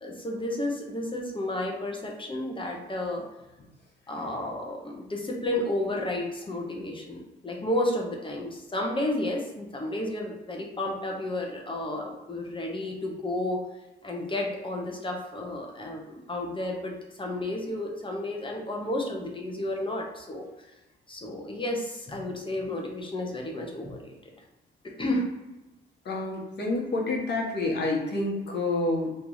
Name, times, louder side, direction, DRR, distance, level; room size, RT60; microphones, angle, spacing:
voice 1, 0.0-3.2 4.1-13.6 14.0-16.9 17.2-20.5 21.1-24.1 25.0-25.3, left 1 dB, 25° left, 0 dB, 0.9 m, -32 dB
voice 2, 26.0-29.1, left 2 dB, 55° left, -1 dB, 1.2 m, -28 dB
3.1 x 2.7 x 3.9 m, 1.1 s
cardioid pair, 90°, 20 cm